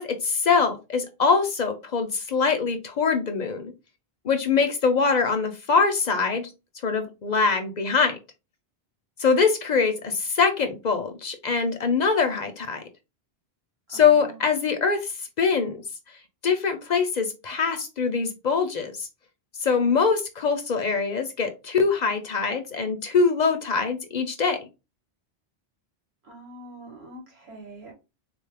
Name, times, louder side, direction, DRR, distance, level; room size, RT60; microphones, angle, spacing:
voice 1, 0.0-3.7 4.2-6.5 6.8-8.2 9.2-12.8 13.9-15.8 16.4-19.1 19.6-24.6, left 5 dB, 55° left, 0.5 m, -23 dB
voice 2, 13.9-14.5 26.2-27.9, right 2 dB, 90° right, 1.4 m, -44 dB
3.7 x 2.3 x 3.3 m
omnidirectional pair, 1.0 m